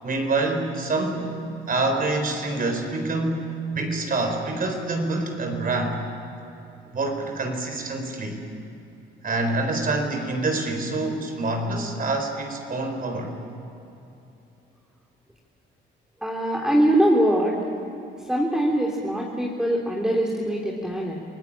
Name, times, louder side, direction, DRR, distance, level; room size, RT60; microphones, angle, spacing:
voice 1, 0.0-1.3 1.7-6.0 6.8-8.4 9.2-13.3, right 2 dB, 45° right, 4 dB, 4.4 m, -26 dB
voice 2, 16.2-17.5 18.3-21.2, right 1 dB, 5° right, -2 dB, 3.2 m, -22 dB
28.0 x 18.0 x 8.9 m, 2.9 s
cardioid pair, 90°, 20 cm